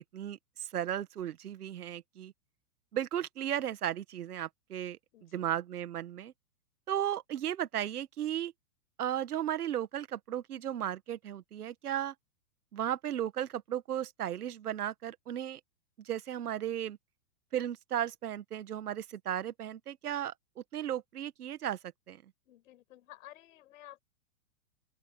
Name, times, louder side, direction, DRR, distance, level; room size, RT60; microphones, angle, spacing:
voice 1, 0.1-2.3 2.9-6.3 6.9-8.5 9.0-12.1 12.7-15.6 16.0-17.0 17.5-21.8 22.1-22.2, right 11 dB, 80° right, 1.6 m, -35 dB
voice 2, 5.1-5.6 22.5-24.0, left 14 dB, 60° left, 6.2 m, -54 dB
open air
hypercardioid pair, 135°, 44 cm